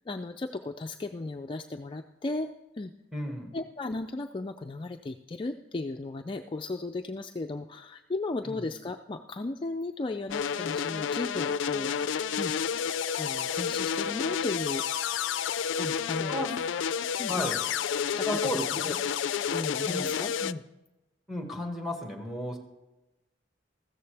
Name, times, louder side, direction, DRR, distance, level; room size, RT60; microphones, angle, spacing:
voice 1, 0.1-2.5 2.8-2.9 3.5-12.1 12.4-12.5 13.2-14.8 15.8-16.5 17.2-17.5 18.2-18.3 18.5-18.9 19.5-20.6, left 2 dB, 25° left, 5 dB, 0.4 m, -35 dB
voice 2, 3.1-3.5 8.5-8.6 16.3-16.5 17.3-17.6 18.2-19.0 19.8-20.1 21.3-22.6, left 1 dB, ahead, 3 dB, 1.8 m, -33 dB
sound 1, 10.3-20.5, left 7 dB, 90° left, 0.4 m, -30 dB
15.0 x 13.5 x 3.4 m, 1.0 s
head